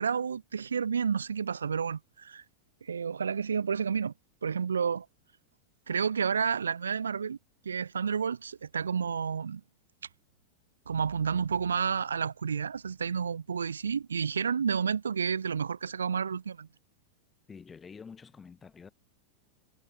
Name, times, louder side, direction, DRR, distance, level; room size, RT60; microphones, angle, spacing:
voice 1, 0.0-2.4 2.8-4.1 4.4-5.1 5.9-7.4 7.6-9.6 10.9-16.7, right 6 dB, 70° right, 0.6 m, -30 dB
voice 2, 17.5-18.9, left 5 dB, 15° left, 1.2 m, -48 dB
figure-of-eight pair, 90°, 0 cm